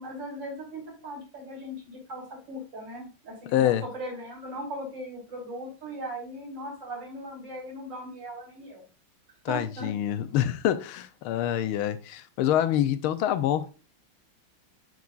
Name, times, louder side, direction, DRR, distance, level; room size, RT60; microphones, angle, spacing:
voice 1, 0.0-8.8 9.5-9.9, equal, 60° right, 3.7 m, -38 dB
voice 2, 3.5-3.8 9.4-13.7, left 11 dB, 90° left, 1.5 m, -26 dB
9.3 x 6.7 x 2.5 m
omnidirectional pair, 2.3 m